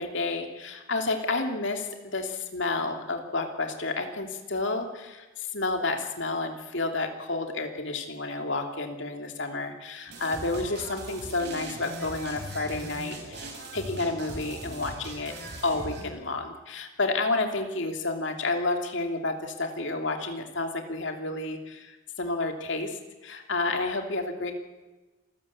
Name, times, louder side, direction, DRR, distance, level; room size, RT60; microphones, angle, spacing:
voice 1, 0.0-15.3 15.6-24.5, left 3 dB, 55° left, 4 dB, 2.9 m, -30 dB
sound 1, 10.1-16.0, right 1 dB, 50° right, 6.2 m, -40 dB
27.0 x 15.0 x 8.8 m, 1.2 s
head